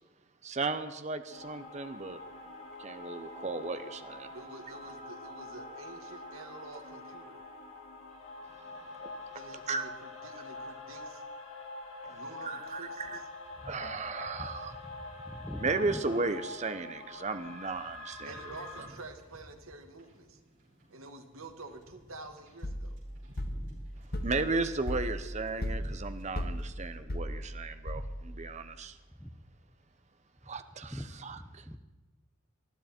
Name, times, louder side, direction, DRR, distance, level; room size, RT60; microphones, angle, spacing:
voice 1, 0.4-2.2 2.8-4.3 9.0-9.1 9.7-9.9 12.0-12.1 12.4-13.2 13.6-14.7 15.6-18.3 24.2-28.9 30.5-30.9 31.2-31.6, right 3 dB, 35° right, 10 dB, 0.8 m, -35 dB
sound 1, 1.3-18.8, left 2 dB, 85° left, 4.2 m, -45 dB
voice 2, 4.3-7.4 9.3-9.9 10.2-11.2 12.1-13.2 18.2-20.4 20.9-23.0, right 2 dB, 85° right, 6 dB, 1.9 m, -48 dB
voice 3, 14.3-16.0 25.8-25.9 27.9-28.1 29.1-29.4 30.4-30.5 30.8-31.8, equal, 5° left, 5 dB, 0.8 m, -44 dB
Wind / Boat Water vehicle, 18.4-27.0, equal, 60° right, 5.2 m, -58 dB
sound 2, 22.6-28.4, equal, 45° left, 1.3 m, -37 dB
20.0 x 13.0 x 4.4 m, 1.2 s
head